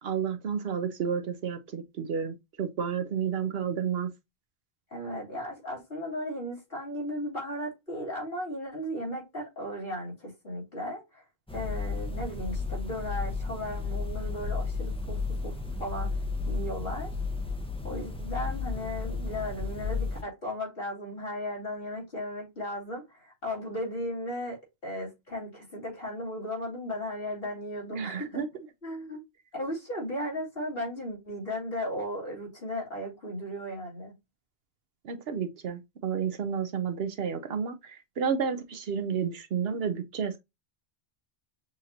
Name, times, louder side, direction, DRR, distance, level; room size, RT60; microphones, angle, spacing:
voice 1, 0.0-4.1 27.9-28.5 35.0-40.4, right 7 dB, 65° right, 0.8 m, -31 dB
voice 2, 4.9-11.2 11.5-16.1 16.5-17.1 17.8-28.4 28.8-29.2 29.5-34.1, equal, 60° left, 3.2 m, -36 dB
sound 1, 11.5-20.2, left 4 dB, 5° left, 0.5 m, -33 dB
6.4 x 2.6 x 2.7 m
omnidirectional pair, 1.1 m